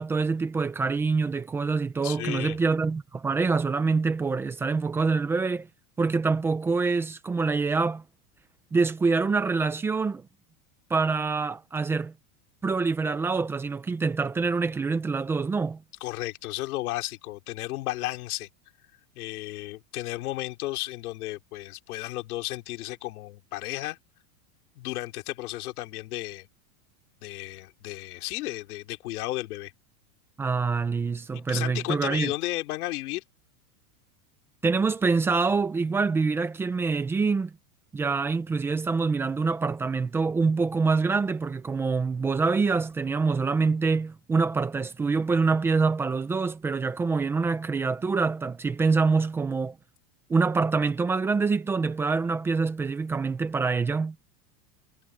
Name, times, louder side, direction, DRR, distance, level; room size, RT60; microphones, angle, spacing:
voice 1, 0.0-5.7 6.0-8.0 8.7-10.3 10.9-12.1 12.6-15.8 30.4-32.3 34.6-37.5 37.9-49.8 50.3-54.2, right 4 dB, 5° right, 0.3 m, -25 dB
voice 2, 2.0-2.6 16.0-18.5 19.1-24.0 24.8-26.5 27.2-29.7 31.3-33.2, left 18 dB, 75° left, 3.1 m, -33 dB
supercardioid pair, 155°, 44 cm